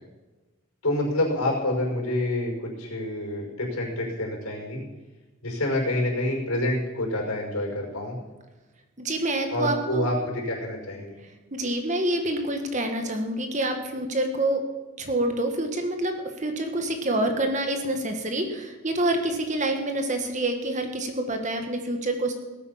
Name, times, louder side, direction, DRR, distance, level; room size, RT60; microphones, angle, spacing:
voice 1, 0.8-4.8 5.4-8.2 9.5-11.2, left 1 dB, 85° left, -1 dB, 5.4 m, -27 dB
voice 2, 9.0-10.1 11.5-14.6 15.0-22.3, right 1 dB, 35° right, 5 dB, 1.5 m, -27 dB
18.5 x 8.8 x 5.7 m, 1.2 s
head